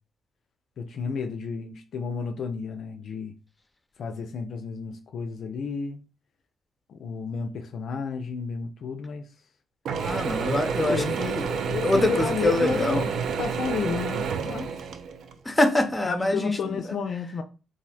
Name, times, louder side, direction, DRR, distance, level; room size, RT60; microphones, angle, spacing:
voice 1, 0.8-3.3 4.0-6.0 6.9-9.3 10.8-11.2 11.6-13.1 13.4-14.7 16.1-17.4, left 5 dB, 65° left, 0.3 m, -31 dB
Mechanisms / Drill, 9.9-15.4, right 6 dB, 70° right, 0.3 m, -29 dB
voice 2, 10.0-13.1 15.4-17.0, left 2 dB, 20° left, 0.6 m, -25 dB
2.5 x 2.0 x 3.9 m
supercardioid pair, 65°, 0 cm